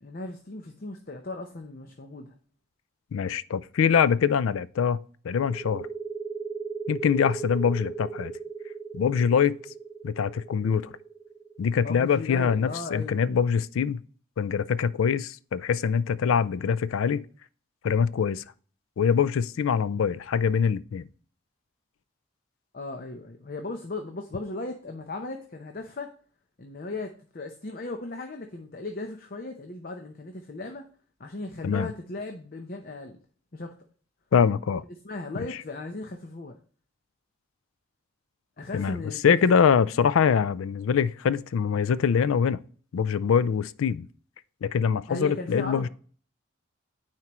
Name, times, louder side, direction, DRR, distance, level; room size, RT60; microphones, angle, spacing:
voice 1, 0.0-2.3 11.8-13.4 22.7-26.1 26.6-30.9 31.2-33.2 33.5-33.7 35.0-36.6 38.6-39.5 45.1-45.9, left 2 dB, 45° left, 0.7 m, -37 dB
voice 2, 3.1-5.0 5.2-5.9 6.9-8.3 8.9-9.6 10.0-10.9 11.6-14.0 14.4-17.3 17.8-18.4 19.0-21.1 31.6-31.9 34.3-34.8 38.7-42.6 42.9-44.1 44.6-45.9, left 7 dB, 80° left, 0.4 m, -24 dB
sound 1, 5.3-12.7, right 5 dB, 10° right, 0.3 m, -37 dB
9.5 x 4.5 x 3.0 m
head